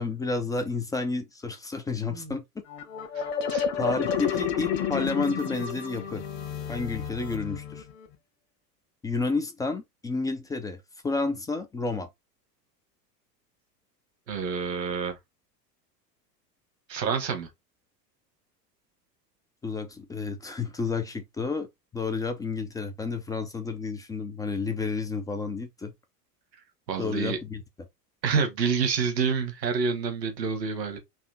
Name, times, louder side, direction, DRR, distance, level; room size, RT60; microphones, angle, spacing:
voice 1, 0.0-2.4 3.8-6.2 6.7-7.9 9.0-12.1 19.6-21.7 21.9-25.9 27.0-27.6, left 4 dB, 10° left, 0.4 m, -30 dB
sound 1, 2.7-8.1, left 7 dB, 45° left, 1.3 m, -31 dB
voice 2, 3.1-3.7 14.3-15.2 16.9-17.5 26.9-27.4 28.2-31.0, right 5 dB, 80° right, 1.4 m, -28 dB
4.2 x 2.9 x 4.0 m
figure-of-eight pair, 85°, 49 cm